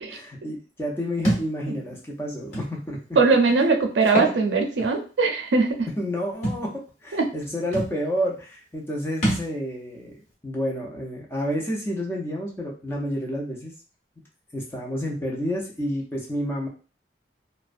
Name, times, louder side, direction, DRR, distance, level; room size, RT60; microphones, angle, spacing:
voice 1, 0.1-3.0 5.9-10.1 10.4-13.7 14.5-16.7, equal, 15° left, -2 dB, 0.4 m, -30 dB
Thump thud, 1.2-1.5 2.5-2.7 4.0-4.4 4.8-4.9 6.4-6.6 7.4-7.5 7.7-8.0 9.2-9.5, right 1 dB, 40° left, 1.0 m, -25 dB
voice 2, 3.2-5.9 7.1-7.3, right 4 dB, 80° right, 4 dB, 0.5 m, -20 dB
2.4 x 2.1 x 2.4 m, 0.37 s
head